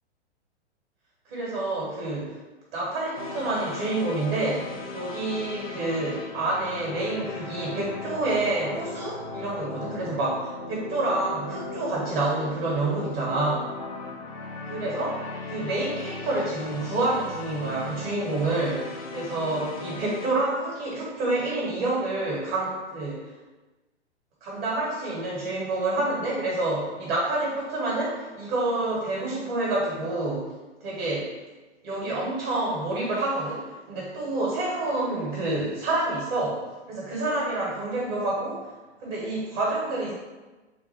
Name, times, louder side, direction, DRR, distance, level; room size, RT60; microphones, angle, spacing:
voice 1, 1.3-2.4 2.7-13.7 14.6-15.2 15.5-23.3 24.4-30.5 30.8-31.3 31.8-36.6 36.9-38.7 39.0-40.1, right 2 dB, 45° right, -4 dB, 1.3 m, -28 dB
sound 1, 3.2-20.3, left 3 dB, 30° left, 0.4 m, -38 dB
3.6 x 2.2 x 3.4 m, 1.2 s
figure-of-eight pair, 110°, 35 cm